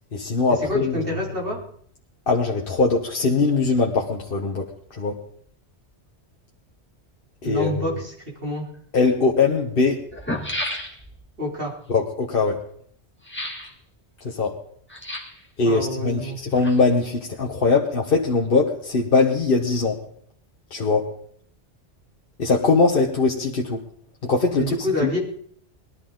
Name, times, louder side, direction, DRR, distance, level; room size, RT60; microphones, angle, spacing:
voice 1, 0.1-1.1 2.3-5.2 7.4-7.9 8.9-10.0 11.9-12.6 14.2-14.6 15.6-20.0 20.7-21.1 22.4-23.8 24.2-24.7 25.0-25.1, left 4 dB, 55° left, 0 dB, 1.3 m, -21 dB
voice 2, 0.7-1.6 7.4-8.1 8.4-8.7 11.4-11.7 15.6-16.4 24.6-25.2, left 1 dB, 55° right, -2 dB, 3.5 m, -27 dB
sound 1, 8.7-8.8 9.7-9.8 10.0-11.3 13.2-13.7 14.9-15.5 16.3-17.1 17.4-17.5, left 1 dB, 10° left, 1.8 m, -32 dB
20.0 x 12.5 x 3.8 m, 0.62 s
omnidirectional pair, 1.2 m